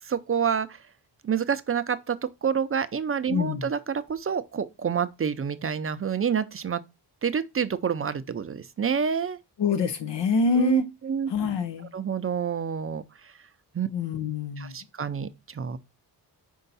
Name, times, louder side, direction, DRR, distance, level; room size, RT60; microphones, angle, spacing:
voice 1, 0.0-0.8 1.2-6.8 7.2-9.4 10.6-11.3 11.9-13.3 13.7-13.9 14.6-15.8, right 7 dB, 35° right, 0.5 m, -28 dB
voice 2, 3.3-3.7 9.6-10.9 11.3-11.9 13.9-14.8, left 4 dB, 85° left, 1.0 m, -26 dB
5.5 x 4.4 x 4.0 m
wide cardioid pair, 110°, 41 cm